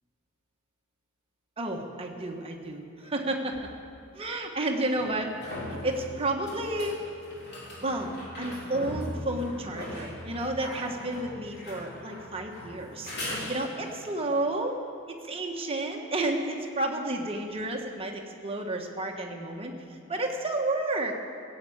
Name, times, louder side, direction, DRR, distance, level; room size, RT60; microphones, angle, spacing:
voice 1, 1.6-3.6 4.1-5.3 5.7-7.0 7.8-13.1 13.5-14.8 15.2-21.1, right 2 dB, 25° right, 1 dB, 1.3 m, -31 dB
sound 1, 3.5-3.6 4.9-14.0 17.4-17.5, left 1 dB, 50° left, 3.8 m, -40 dB
16.5 x 7.7 x 8.6 m, 2.4 s
head